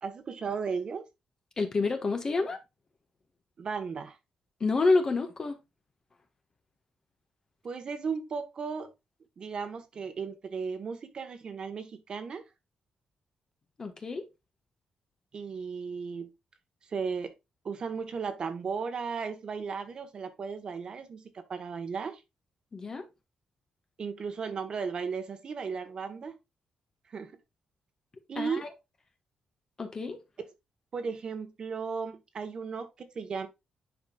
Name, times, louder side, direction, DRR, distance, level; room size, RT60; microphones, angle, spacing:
voice 1, 0.0-1.0 3.6-4.2 7.6-8.9 9.4-12.4 15.3-16.3 16.9-17.3 17.6-22.2 24.0-26.4 27.1-27.3 28.3-28.6 30.9-32.9 33.1-33.5, right 5 dB, 45° right, 1.4 m, -35 dB
voice 2, 1.6-2.6 4.6-5.6 13.8-14.2 22.7-23.0 28.4-28.7 29.8-30.2, left 3 dB, 30° left, 1.5 m, -28 dB
10.0 x 5.2 x 2.4 m
cardioid pair, 140°, 2 cm